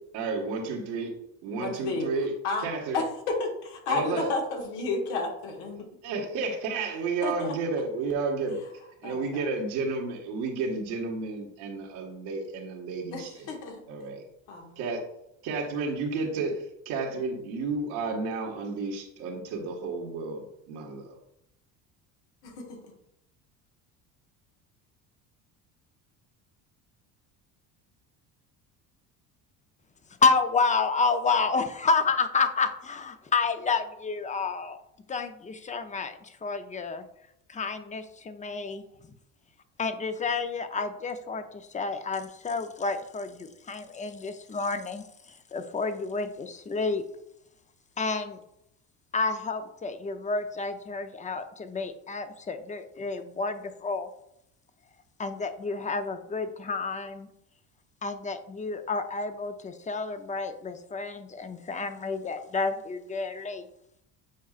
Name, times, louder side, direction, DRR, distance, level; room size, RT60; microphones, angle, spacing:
voice 1, 0.1-1.1 1.4-2.3 2.6-3.0 3.9-4.3 6.0-8.6 9.0-13.5 13.9-14.2 14.8-15.0 15.4-21.1, right 4 dB, 85° right, 0 dB, 1.6 m, -32 dB
voice 2, 1.6-2.1 2.4-2.7 2.9-5.9 7.2-7.5 9.0-9.4 13.1-13.8 14.5-14.8 22.4-22.9, left 3 dB, 90° left, 0 dB, 1.7 m, -32 dB
voice 3, 30.2-34.8 35.1-37.1 37.5-38.8 39.8-47.0 48.0-48.4 49.1-54.1 55.2-57.3 58.0-63.7, left 4 dB, 20° left, 9 dB, 0.6 m, -30 dB
8.4 x 4.7 x 2.4 m, 0.79 s
supercardioid pair, 100°, 37 cm